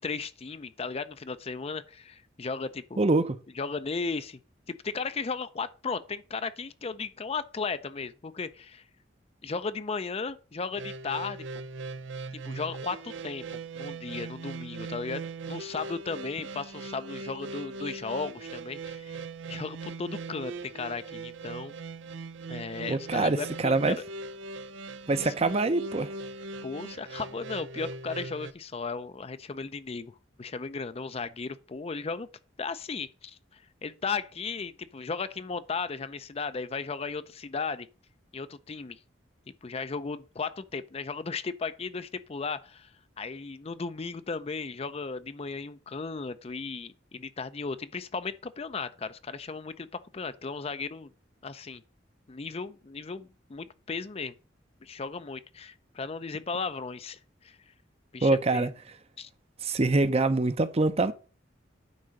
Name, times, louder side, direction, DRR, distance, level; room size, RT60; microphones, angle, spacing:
voice 1, 0.0-3.0 3.6-4.4 4.7-8.8 9.4-11.4 12.3-19.2 19.5-21.7 22.5-24.0 25.2-25.3 26.6-30.1 30.4-32.3 32.6-37.9 38.3-39.0 39.6-42.9 43.2-51.1 51.4-51.8 52.3-54.3 54.8-57.6 58.1-58.7 59.2-59.3, left 4 dB, 30° left, 0.5 m, -35 dB
voice 2, 3.0-3.4 22.9-24.0 25.1-26.1 58.2-58.7 59.6-61.1, right 2 dB, 35° right, 0.6 m, -24 dB
sound 1, 10.7-28.5, right 3 dB, 75° right, 0.5 m, -40 dB
9.4 x 3.9 x 6.3 m
head